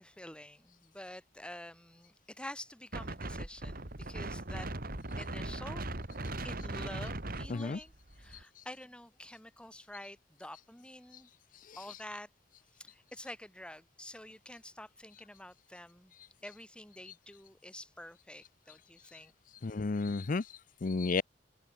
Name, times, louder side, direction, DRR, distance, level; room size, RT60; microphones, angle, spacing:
voice 1, 0.0-4.7 5.2-5.8 6.4-11.3 11.8-12.3 12.7-16.1 16.4-19.3, left 1 dB, 5° left, 6.1 m, -48 dB
Wind, 2.9-8.4, right 2 dB, 50° right, 2.9 m, -39 dB
voice 2, 19.6-21.2, left 3 dB, 45° left, 0.6 m, -33 dB
head